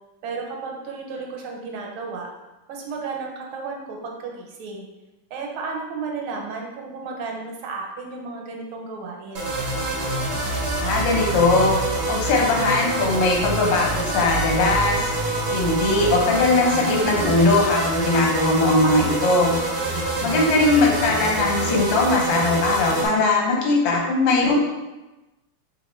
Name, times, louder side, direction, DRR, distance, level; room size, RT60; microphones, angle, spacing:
voice 1, 0.2-2.3 2.7-4.9 5.3-9.5 19.8-20.3, right 4 dB, 75° right, 0 dB, 1.5 m, -33 dB
sound 1, 9.3-23.1, right 2 dB, 55° right, 0.7 m, -26 dB
voice 2, 10.8-11.7 12.1-15.0 15.3-19.5 20.2-24.5, left 2 dB, 70° left, -1 dB, 1.4 m, -20 dB
3.4 x 2.9 x 4.1 m, 1.1 s
omnidirectional pair, 2.4 m